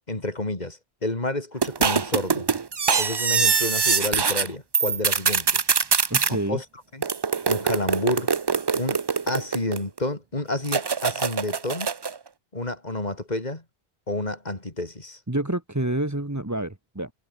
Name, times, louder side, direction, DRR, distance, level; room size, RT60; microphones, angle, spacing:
voice 1, 0.1-2.5 3.0-5.6 6.3-6.6 6.9-7.0 7.5-8.3 8.7-9.0 9.3-11.9 12.5-13.6 14.1-15.2, left 2 dB, 45° left, 3.6 m, -30 dB
sound 1, 1.6-4.5 4.7-6.3 7.0-10.0 10.7-12.2, right 5 dB, 35° right, 0.5 m, -23 dB
voice 2, 6.1-6.6 15.3-17.1, right 1 dB, 15° right, 1.6 m, -28 dB
omnidirectional pair, 1.0 m